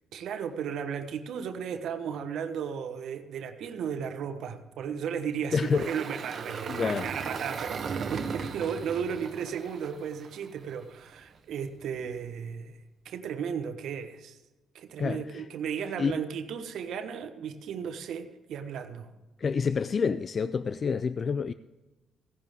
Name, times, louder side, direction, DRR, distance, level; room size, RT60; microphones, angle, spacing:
voice 1, 0.1-12.8 13.0-14.4 14.7-19.1, right 7 dB, 75° right, 1.2 m, -35 dB
Engine, 5.4-10.7, right 5 dB, 55° right, 1.2 m, -37 dB
voice 2, 5.5-5.9 6.7-7.1 15.0-15.5 16.0-16.2 19.4-21.5, left 5 dB, 45° left, 0.4 m, -28 dB
16.0 x 11.0 x 3.6 m
cardioid pair, 90°, 0 cm